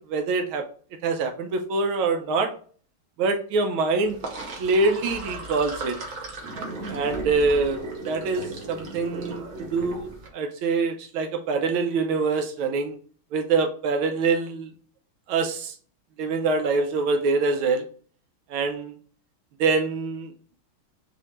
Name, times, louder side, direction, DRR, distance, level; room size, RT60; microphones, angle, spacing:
voice 1, 0.1-0.6 1.0-2.5 3.2-4.2 4.6-6.0 6.9-9.4 9.7-13.0 13.3-14.7 15.3-15.7 16.2-17.8 18.5-18.9 19.6-20.3, right 4 dB, 80° right, 4 dB, 1.4 m, -25 dB
Sink (filling or washing), 4.0-10.3, right 2 dB, 50° right, 1.1 m, -36 dB
5.5 x 2.6 x 3.0 m, 0.43 s
omnidirectional pair, 2.3 m